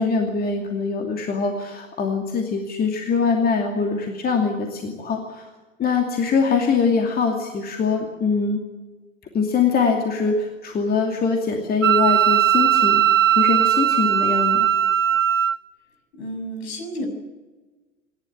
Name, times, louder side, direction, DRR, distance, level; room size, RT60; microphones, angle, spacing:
voice 1, 0.0-5.5 5.8-8.6 9.3-13.0 13.3-14.7, left 5 dB, 25° left, 2 dB, 2.6 m, -23 dB
Wind instrument woodwind instrument, 11.8-15.6, right 10 dB, 80° right, 0.7 m, -18 dB
voice 2, 16.1-17.1, equal, 55° left, 5 dB, 6.9 m, -31 dB
27.5 x 12.0 x 9.8 m, 1.2 s
figure-of-eight pair, 90°, 38 cm